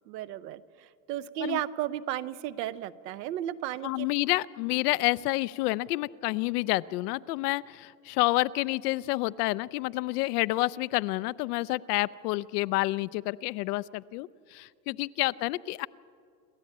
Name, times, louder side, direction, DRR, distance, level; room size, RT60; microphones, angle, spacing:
voice 1, 0.1-4.1, right 12 dB, 75° right, 14 dB, 1.0 m, -34 dB
voice 2, 3.8-15.9, left 19 dB, 65° left, 18 dB, 0.6 m, -29 dB
27.5 x 12.5 x 8.6 m, 2.3 s
supercardioid pair, 120°, 49 cm